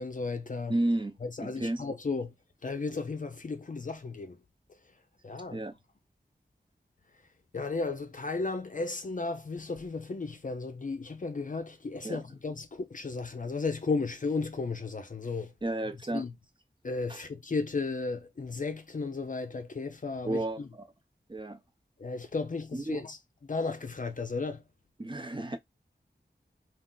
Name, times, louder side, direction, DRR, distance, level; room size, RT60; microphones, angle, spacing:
voice 1, 0.0-0.8 1.2-2.3 2.6-4.4 5.2-5.6 7.5-15.5 16.1-16.3 16.8-20.4 22.0-23.2 23.4-24.6, left 4 dB, 45° left, 0.4 m, -34 dB
voice 2, 0.7-1.8 5.5-5.8 12.0-12.2 15.6-16.2 17.1-17.2 20.2-20.9 21.3-21.6 22.7-23.0 25.0-25.6, right 1 dB, 25° right, 0.6 m, -32 dB
2.3 x 2.1 x 3.7 m
wide cardioid pair, 50°, 18 cm